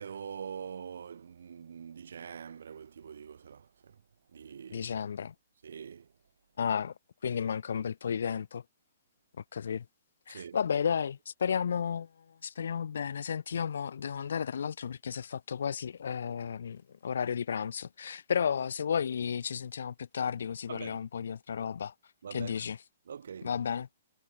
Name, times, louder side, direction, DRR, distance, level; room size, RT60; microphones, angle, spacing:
voice 1, 0.0-4.0 4.3-4.9 5.6-6.1 10.3-10.6 20.7-21.0 22.2-22.6 23.1-23.5, right 7 dB, 80° right, 5.8 m, -44 dB
voice 2, 4.7-5.3 6.6-6.9 7.2-8.6 9.5-9.8 10.3-12.1 12.4-21.9 22.3-22.8 23.4-23.9, left 7 dB, 80° left, 0.8 m, -33 dB
hypercardioid pair, 165°, 0 cm